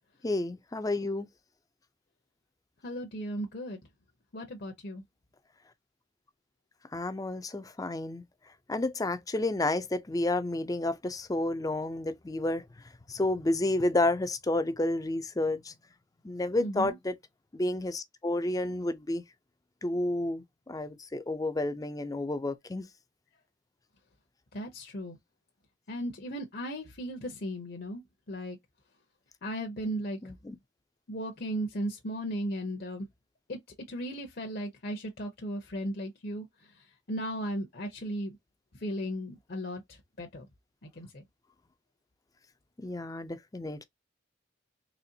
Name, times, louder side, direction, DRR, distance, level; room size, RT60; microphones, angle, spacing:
voice 1, 0.2-1.3 6.9-8.2 8.7-12.7 13.1-15.7 16.2-17.2 17.5-19.2 19.8-22.8 30.2-30.6 42.8-43.8, left 2 dB, 20° left, 0.5 m, -30 dB
voice 2, 2.8-3.8 4.3-5.0 16.6-16.9 24.5-25.2 25.9-28.0 28.3-28.6 29.4-30.2 31.1-33.1 33.5-33.6 33.9-36.5 37.1-38.4 38.8-39.8 40.2-40.5 41.0-41.2, equal, 55° left, 0.8 m, -36 dB
4.2 x 3.1 x 2.7 m
head